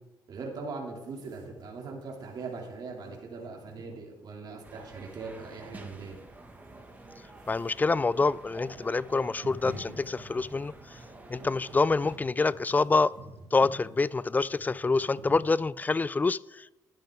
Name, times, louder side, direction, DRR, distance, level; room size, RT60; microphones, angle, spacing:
voice 1, 0.3-6.2, right 4 dB, 55° right, 2.8 m, -40 dB
sound 1, 1.0-15.9, right 2 dB, 85° right, 4.6 m, -50 dB
sound 2, 4.6-12.2, right 2 dB, 20° right, 1.8 m, -49 dB
voice 2, 7.5-10.7 11.3-13.1 13.5-16.7, left 3 dB, 20° left, 0.3 m, -26 dB
12.0 x 10.0 x 3.7 m
supercardioid pair, 75°, 8 cm